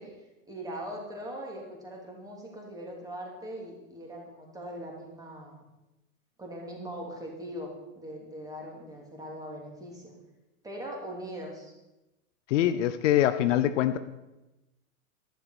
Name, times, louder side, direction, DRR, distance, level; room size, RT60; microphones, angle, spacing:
voice 1, 0.5-5.6 6.4-7.7 8.0-10.1 10.6-11.7, equal, 10° right, -1 dB, 3.2 m, -40 dB
voice 2, 12.5-14.0, left 12 dB, 60° left, 11 dB, 0.8 m, -24 dB
11.5 x 11.0 x 6.1 m, 1.0 s
supercardioid pair, 145°, 42 cm